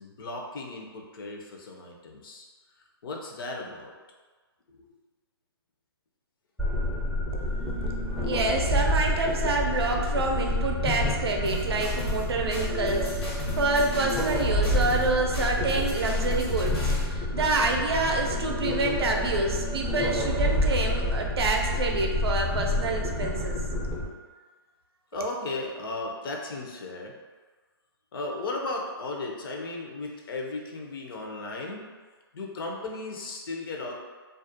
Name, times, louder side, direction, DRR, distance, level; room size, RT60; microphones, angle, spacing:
voice 1, 0.0-2.4 3.0-3.9 4.7-4.9 25.1-27.1 28.1-31.9 32.3-34.0, left 2 dB, 60° left, 0 dB, 0.5 m, -35 dB
sound 1, 6.6-24.0, left 1 dB, ahead, 0.3 m, -28 dB
voice 2, 8.2-23.6, right 3 dB, 75° right, 1 dB, 0.4 m, -27 dB
sound 2, 11.4-12.2 12.5-15.1 15.3-17.0, left 1 dB, 90° left, 1.0 m, -37 dB
2.4 x 2.1 x 2.6 m, 1.4 s
hypercardioid pair, 140°, 13 cm